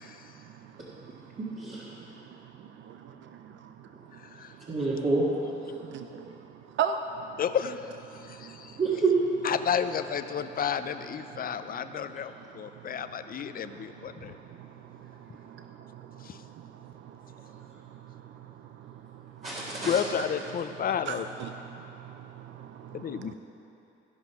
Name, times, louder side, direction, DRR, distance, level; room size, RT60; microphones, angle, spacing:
voice 1, 0.0-1.4 1.9-2.5 3.6-4.8 5.7-7.4 8.1-8.8 11.3-19.9 21.1-23.3, right 7 dB, 70° right, 7 dB, 0.5 m, -41 dB
voice 2, 1.4-1.9 4.7-5.2 8.8-9.2 19.4-20.0, right 4 dB, 35° right, -8 dB, 1.9 m, -27 dB
voice 3, 4.1-4.5 7.4-8.8 9.4-14.4 16.2-16.4 19.9-21.3 22.9-23.3, left 8 dB, 45° left, 10 dB, 0.5 m, -32 dB
15.0 x 5.4 x 6.0 m, 3.0 s
cardioid pair, 90°, 20 cm